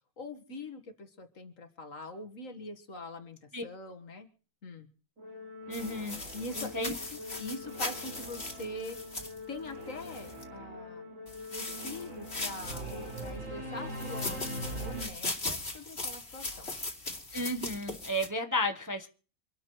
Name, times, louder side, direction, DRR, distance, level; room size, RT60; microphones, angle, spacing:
voice 1, 0.2-4.3 4.6-4.9 6.3-9.0 9.5-11.1 11.5-16.7, left 2 dB, 65° left, 7 dB, 1.9 m, -43 dB
Singing / Musical instrument, 5.2-15.1, equal, 60° right, 5.3 m, -42 dB
sound 1, 5.7-10.4 11.3-13.3 13.9-18.3, left 2 dB, 45° left, 3.0 m, -39 dB
voice 2, 5.7-6.2 6.6-6.9 17.3-19.1, left 1 dB, 15° right, 4 dB, 0.7 m, -33 dB
26.0 x 12.5 x 3.1 m, 0.40 s
omnidirectional pair, 1.5 m